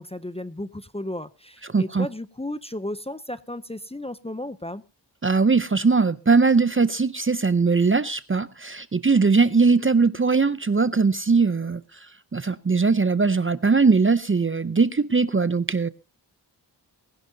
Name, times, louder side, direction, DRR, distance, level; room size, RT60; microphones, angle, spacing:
voice 1, 0.0-4.8, left 1 dB, 15° left, 0.5 m, -34 dB
voice 2, 1.7-2.1 5.2-11.8 12.3-15.9, right 4 dB, 30° right, 0.5 m, -20 dB
20.0 x 10.5 x 2.7 m
wide cardioid pair, 60°, 43 cm